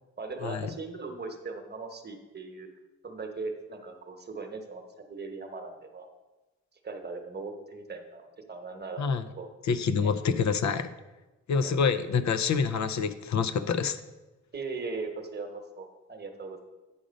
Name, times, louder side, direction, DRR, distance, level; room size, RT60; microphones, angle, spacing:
voice 1, 0.2-2.7 3.0-6.1 6.8-9.0 9.4-9.5 10.0-10.1 11.5-11.8 14.5-16.7, right 3 dB, 35° right, 5 dB, 1.1 m, -39 dB
voice 2, 9.7-10.9 11.5-14.0, left 6 dB, 70° left, 11 dB, 0.6 m, -27 dB
8.9 x 5.0 x 5.2 m, 1.1 s
wide cardioid pair, 120°, 29 cm